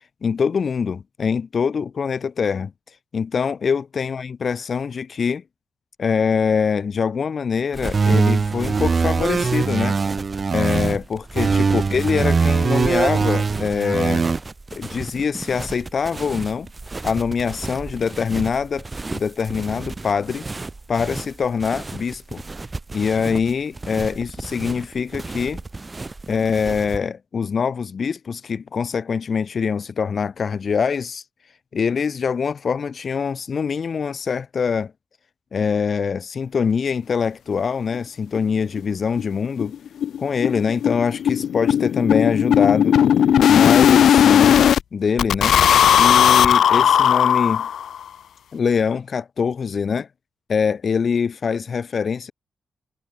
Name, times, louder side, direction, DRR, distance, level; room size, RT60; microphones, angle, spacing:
voice 1, 0.2-2.7 3.1-5.4 6.0-10.0 10.5-14.3 14.7-16.7 17.0-18.9 19.1-20.4 20.9-22.4 22.9-25.6 26.3-31.2 31.7-34.9 35.5-39.7 40.2-43.0 43.5-44.6 44.9-45.6 46.0-47.7 48.5-50.1 50.5-52.3, left 6 dB, 55° left, 0.6 m, -23 dB
sound 1, 7.7-27.0, right 3 dB, 25° right, 4.4 m, -34 dB
sound 2, 7.9-10.9 11.4-14.4, right 5 dB, 45° right, 0.3 m, -21 dB
sound 3, 37.9-38.0 38.4-38.5 38.8-38.9 39.2-39.3 39.6-44.8 45.2-48.0, left 9 dB, 80° left, 1.0 m, -16 dB
cardioid pair, 85°, 0 cm